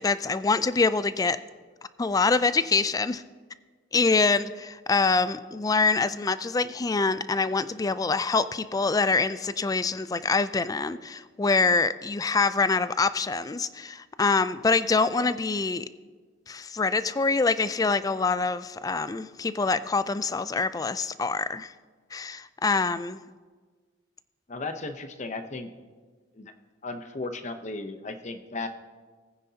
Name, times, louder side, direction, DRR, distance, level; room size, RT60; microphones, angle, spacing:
voice 1, 0.0-1.4 2.0-3.2 3.9-15.8 16.5-21.7 22.1-23.2, left 4 dB, 20° left, 14 dB, 0.3 m, -25 dB
voice 2, 24.5-25.7 26.3-26.5 26.8-28.7, left 3 dB, 40° left, 8 dB, 0.7 m, -35 dB
19.0 x 9.7 x 2.8 m, 1.4 s
head